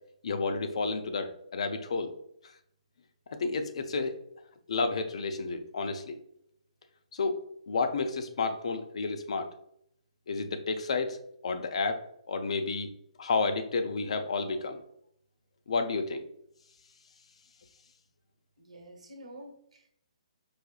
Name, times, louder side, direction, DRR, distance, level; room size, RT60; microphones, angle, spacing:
voice 1, 0.2-2.1 3.4-4.2 4.7-6.2 7.1-9.5 10.3-11.2 11.4-12.0 12.3-12.9 13.2-14.8 15.7-16.2, left 4 dB, 60° left, 7 dB, 0.5 m, -31 dB
voice 2, 18.6-19.9, right 1 dB, 70° right, 3 dB, 0.9 m, -49 dB
4.8 x 2.8 x 2.3 m, 0.71 s
figure-of-eight pair, 135°, 4 cm